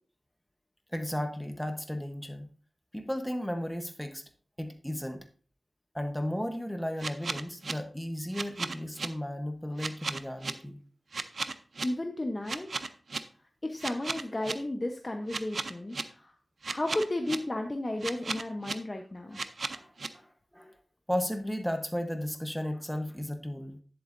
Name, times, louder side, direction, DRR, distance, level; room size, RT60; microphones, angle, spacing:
voice 1, 0.9-2.5 2.9-4.2 4.6-5.2 5.9-10.8 19.3-19.4 19.7-20.8 21.1-23.8, equal, 5° left, 5 dB, 1.0 m, -35 dB
sound 1, 7.0-7.7 8.3-9.1 9.8-10.5 11.1-11.9 12.5-13.2 13.8-14.5 15.3-16.0 16.6-17.4 18.0-18.7 19.3-20.1, right 4 dB, 70° right, 0.6 m, -34 dB
voice 2, 11.8-12.9 13.6-16.3 16.7-19.4, left 1 dB, 30° left, 3 dB, 0.9 m, -33 dB
10.5 x 8.0 x 2.6 m, 0.42 s
wide cardioid pair, 65°, 0 cm